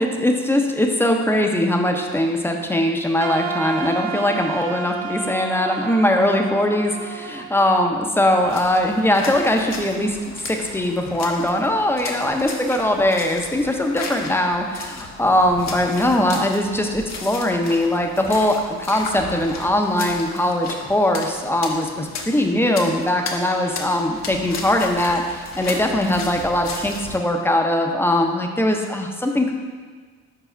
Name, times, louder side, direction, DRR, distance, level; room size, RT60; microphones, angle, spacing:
voice 1, 0.0-10.2 10.5-29.5, left 1 dB, 10° left, 2 dB, 0.7 m, -21 dB
Wind instrument woodwind instrument, 3.2-8.2, right 6 dB, 60° right, 0.5 m, -31 dB
sound 1, 8.4-27.2, left 3 dB, 60° left, 0.9 m, -35 dB
4.8 x 4.7 x 4.4 m, 1.5 s
cardioid pair, 90°, 30 cm